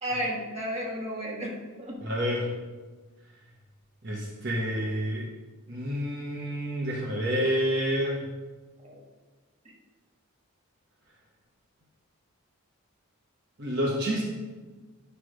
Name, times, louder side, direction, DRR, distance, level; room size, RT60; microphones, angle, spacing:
voice 1, 0.0-2.0 8.8-9.0, equal, 30° right, -3 dB, 1.4 m, -33 dB
voice 2, 2.0-2.5 4.0-5.2 5.7-8.2 13.6-14.2, equal, 50° right, -3 dB, 1.0 m, -28 dB
9.6 x 3.3 x 6.3 m, 1.3 s
head